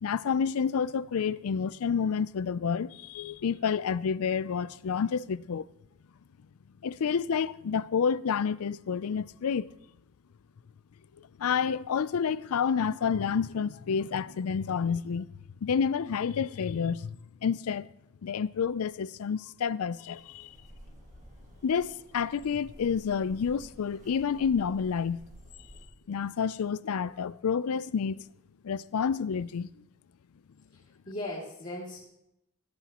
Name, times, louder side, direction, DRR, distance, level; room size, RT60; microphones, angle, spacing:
voice 1, 0.0-5.7 6.8-9.7 11.2-15.3 15.6-17.9 18.2-20.6 21.6-25.2 26.1-28.2 28.6-29.7, left 6 dB, 80° left, 0.4 m, -29 dB
sound 1, 20.1-25.8, equal, 35° right, 1.9 m, -52 dB
voice 2, 30.7-32.2, left 1 dB, 35° left, 2.5 m, -39 dB
17.0 x 13.0 x 3.0 m
head